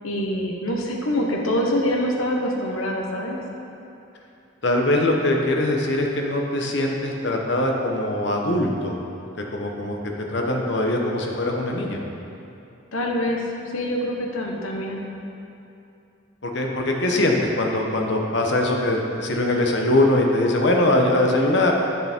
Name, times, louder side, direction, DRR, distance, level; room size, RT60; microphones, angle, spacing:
voice 1, 0.0-3.4 12.9-15.0, left 1 dB, 90° left, 0 dB, 1.1 m, -25 dB
voice 2, 4.6-8.9 9.5-12.0 16.4-21.7, left 1 dB, 55° left, 1 dB, 1.0 m, -22 dB
8.8 x 6.8 x 4.4 m, 2.7 s
head